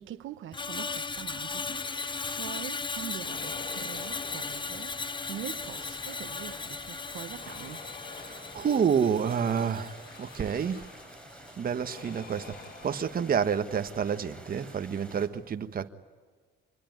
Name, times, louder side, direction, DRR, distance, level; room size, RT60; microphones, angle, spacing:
voice 1, 0.0-1.9 2.3-5.0 5.3-7.9, right 12 dB, 80° right, 1.2 m, -43 dB
Screech, 0.5-10.9 11.2-11.5, left 4 dB, 25° left, 0.8 m, -37 dB
sound 1, 1.7-2.8 3.2-5.2 5.6-6.9 7.3-9.3 9.9-11.3 11.8-13.9, left 4 dB, 50° left, 2.4 m, -50 dB
sound 2, 3.6-15.3, right 1 dB, 5° left, 6.4 m, -50 dB
voice 2, 8.1-10.9 11.6-15.9, right 7 dB, 45° right, 1.4 m, -29 dB
26.5 x 21.5 x 9.5 m
cardioid pair, 90°, 20 cm